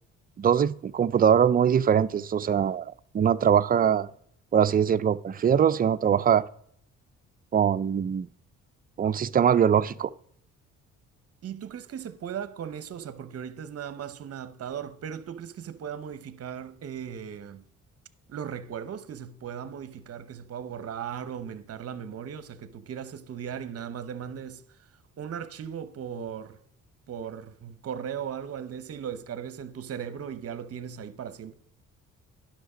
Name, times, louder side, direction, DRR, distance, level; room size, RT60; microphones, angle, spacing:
voice 1, 0.4-4.1 4.5-6.5 7.5-8.3 9.0-10.1, right 8 dB, 30° right, 0.4 m, -22 dB
voice 2, 11.4-17.6 18.3-24.8 25.2-26.6 27.1-31.5, right 8 dB, 50° right, 0.8 m, -37 dB
10.5 x 5.9 x 4.9 m
cardioid pair, 90°, 30 cm